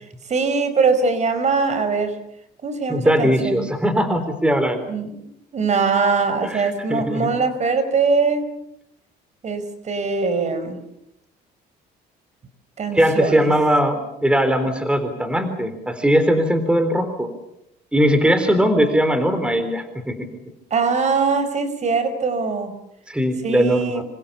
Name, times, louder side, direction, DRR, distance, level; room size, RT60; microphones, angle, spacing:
voice 1, 0.3-2.2 2.6-3.7 4.9-8.5 9.4-10.8 12.8-13.5 20.7-22.8 23.4-24.0, right 4 dB, 45° right, 11 dB, 4.9 m, -22 dB
voice 2, 2.9-4.8 6.4-6.6 6.9-7.3 12.9-17.3 17.9-20.2 23.1-24.0, equal, 5° right, 9 dB, 3.8 m, -19 dB
27.0 x 26.5 x 7.1 m, 0.80 s
cardioid pair, 110°, 17 cm